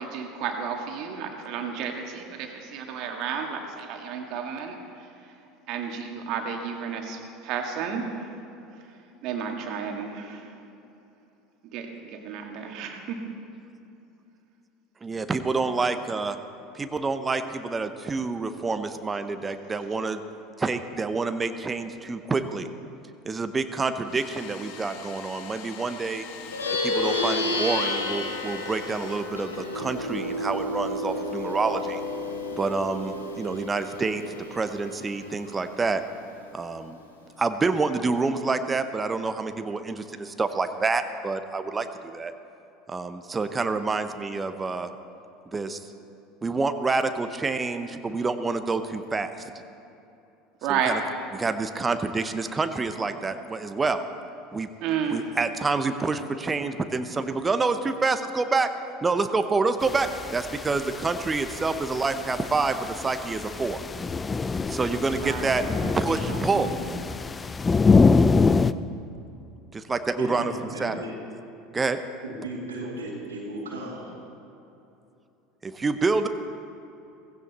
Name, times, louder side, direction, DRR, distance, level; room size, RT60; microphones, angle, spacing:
voice 1, 0.0-5.3 5.7-8.3 8.7-8.8 9.2-10.6 11.7-13.2 50.6-51.0 54.8-55.3 65.2-65.5, right 7 dB, 55° right, 3 dB, 2.0 m, -32 dB
voice 2, 15.0-16.4 16.7-20.2 20.6-22.7 23.2-26.2 26.8-32.0 32.6-34.2 34.5-36.0 36.5-37.0 37.4-42.3 42.9-44.9 45.5-45.9 46.4-49.5 50.7-51.0 51.3-54.0 54.5-54.7 55.1-58.7 59.0-63.8 64.7-65.6 65.9-66.7 69.7-70.5 70.8-71.0 71.7-72.0 75.6-76.3, right 4 dB, 20° right, 9 dB, 0.9 m, -27 dB
Domestic sounds home sounds, 24.0-29.8, left 7 dB, 60° left, 1.3 m, -44 dB
Plucked string instrument, 26.4-36.1, left 2 dB, 90° left, 1.5 m, -31 dB
sound 1, 59.8-68.7, left 4 dB, 20° left, 0.5 m, -25 dB
voice 3, 65.2-66.9 70.2-71.2 72.2-74.1, right 1 dB, 85° right, -3 dB, 2.2 m, -36 dB
16.5 x 16.0 x 4.2 m, 2.8 s
hypercardioid pair, 75°, 0 cm